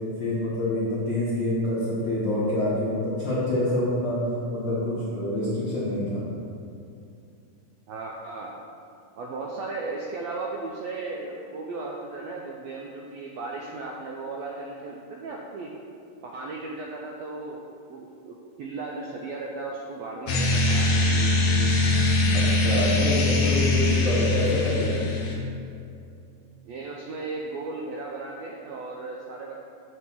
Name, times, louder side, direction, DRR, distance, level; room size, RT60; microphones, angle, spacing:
voice 1, 0.2-4.2 4.5-6.2 22.3-24.9, left 1 dB, 60° left, -9 dB, 1.2 m, -26 dB
voice 2, 7.9-8.5 9.2-15.7 16.2-17.6 17.9-20.9 26.6-29.6, right 3 dB, 90° right, -1 dB, 1.5 m, -36 dB
sound 1, 20.3-25.3, left 2 dB, 80° left, 1.2 m, -22 dB
6.7 x 3.6 x 5.9 m, 2.6 s
omnidirectional pair, 3.5 m